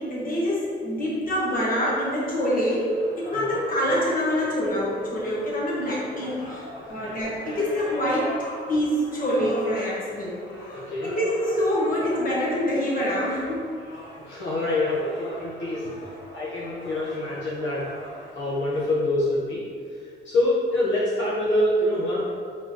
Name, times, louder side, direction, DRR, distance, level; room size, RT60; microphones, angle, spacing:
voice 1, 0.0-8.4 8.7-10.4 10.7-13.7, equal, 45° left, -5 dB, 1.4 m, -26 dB
sound 1, 1.3-18.9, equal, 90° left, 1.3 m, -42 dB
voice 2, 10.7-11.1 14.3-15.9 16.3-17.9 18.3-19.6 19.9-22.2, left 1 dB, 70° left, -8 dB, 1.0 m, -26 dB
4.2 x 4.1 x 3.0 m, 2.1 s
cardioid pair, 90°, 20 cm